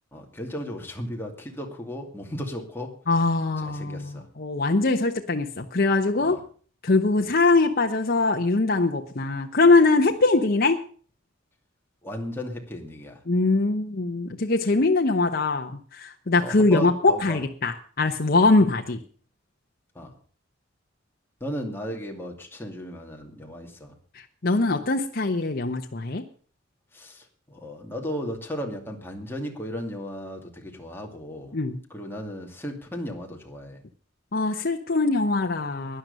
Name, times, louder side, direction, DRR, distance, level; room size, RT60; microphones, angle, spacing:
voice 1, 0.1-3.0 3.6-4.3 6.2-6.4 12.0-13.2 16.4-17.4 18.6-18.7 19.9-20.1 21.4-23.9 26.9-31.6 31.9-33.8, equal, 10° left, 1 dB, 2.5 m, -35 dB
voice 2, 3.1-6.4 6.8-10.8 13.3-19.0 24.1-26.2 31.5-31.8 34.3-36.0, left 3 dB, 50° left, 4 dB, 0.9 m, -22 dB
12.5 x 10.5 x 6.7 m, 0.44 s
head